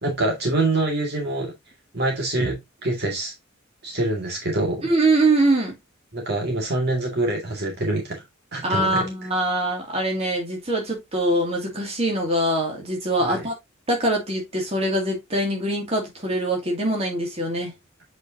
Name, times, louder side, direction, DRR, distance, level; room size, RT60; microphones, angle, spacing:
voice 1, 0.0-1.5 1.9-3.3 3.8-4.9 6.1-8.2 8.5-9.0 13.2-13.5, right 2 dB, 50° right, 2.2 m, -25 dB
voice 2, 4.8-5.7 8.6-13.5 13.9-17.7, right 1 dB, 30° right, 2.6 m, -23 dB
7.9 x 5.1 x 2.8 m
head